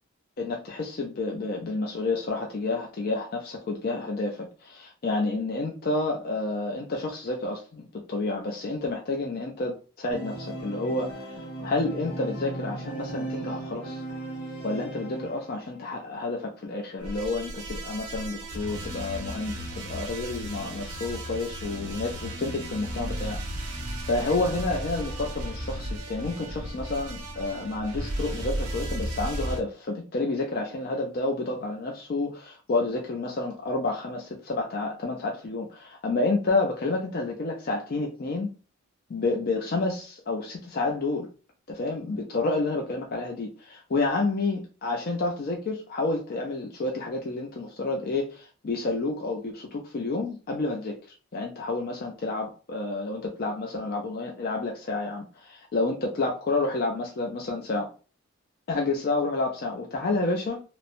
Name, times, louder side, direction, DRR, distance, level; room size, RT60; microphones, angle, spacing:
voice 1, 0.4-11.3 11.6-14.0 14.6-23.4 24.1-38.5 39.1-41.3 41.7-57.9 58.7-60.6, left 3 dB, 45° left, 0.4 m, -29 dB
Organ, 10.1-15.8, right 2 dB, 80° left, 1.0 m, -37 dB
sound 1, 17.0-29.6, right 1 dB, 85° right, 0.7 m, -35 dB
3.0 x 2.0 x 2.5 m
head